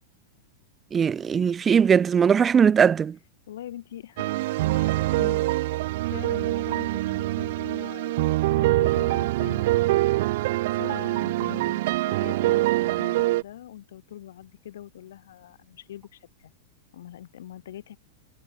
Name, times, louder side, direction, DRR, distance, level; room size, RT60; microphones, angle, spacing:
voice 1, 0.9-3.2, right 7 dB, 15° right, 0.5 m, -20 dB
voice 2, 3.5-4.3 4.7-5.4 6.0-8.2 8.5-10.4 10.7-16.5 16.9-18.0, left 12 dB, 75° left, 7.7 m, -42 dB
sound 1, 4.2-13.4, right 18 dB, 50° right, 0.7 m, -24 dB
supercardioid pair, 165°, 0 cm